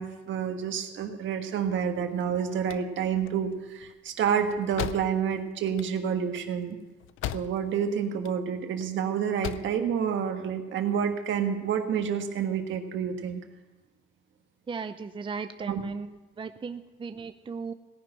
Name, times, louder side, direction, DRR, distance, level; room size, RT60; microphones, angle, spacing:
voice 1, 0.0-6.8 7.3-13.4 15.7-15.8, right 7 dB, 70° right, 5 dB, 1.6 m, -29 dB
sound 1, 2.5-7.8 8.1-8.9 9.2-9.8, left 12 dB, 85° left, 0.5 m, -38 dB
voice 2, 14.7-17.7, right 5 dB, 25° right, 9 dB, 0.6 m, -36 dB
17.5 x 6.0 x 8.9 m, 1.1 s
cardioid pair, 90°, 20 cm